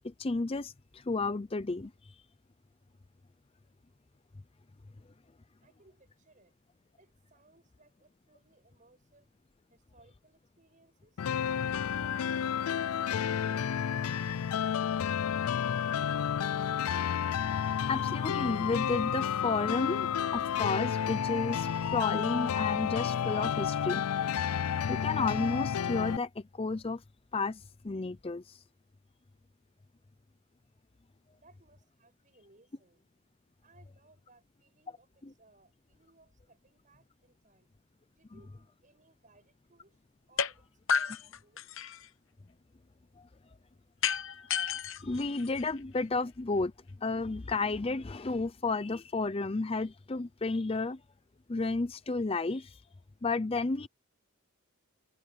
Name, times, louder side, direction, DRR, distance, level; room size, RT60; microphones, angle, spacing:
voice 1, 0.0-1.9 17.9-24.0 24.9-27.0 27.3-28.6 43.2-43.3 45.0-46.7 47.0-51.0 51.5-52.8 53.2-53.9, left 3 dB, 25° left, 0.5 m, -32 dB
voice 2, 5.6-6.6 7.0-9.3 9.7-11.2 11.7-14.7 31.3-33.0 33.6-37.7 38.1-40.0 40.3-41.7, right 2 dB, 35° right, 7.2 m, -65 dB
sound 1, 11.2-26.2, left 8 dB, 85° left, 0.4 m, -31 dB
sound 2, 40.4-40.5 40.9-42.1 44.0-46.0, left 7 dB, 60° left, 1.0 m, -32 dB
head